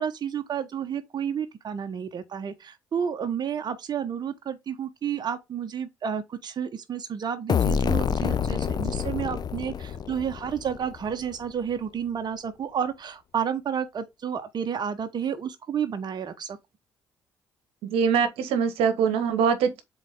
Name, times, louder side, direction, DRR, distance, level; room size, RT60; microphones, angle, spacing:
voice 1, 0.0-16.6, right 8 dB, 45° right, 1.0 m, -31 dB
sound 1, 7.5-11.1, left 7 dB, 45° left, 0.6 m, -27 dB
voice 2, 17.8-19.8, right 6 dB, 70° right, 1.1 m, -23 dB
7.3 x 4.0 x 3.6 m
hypercardioid pair, 50°, 10 cm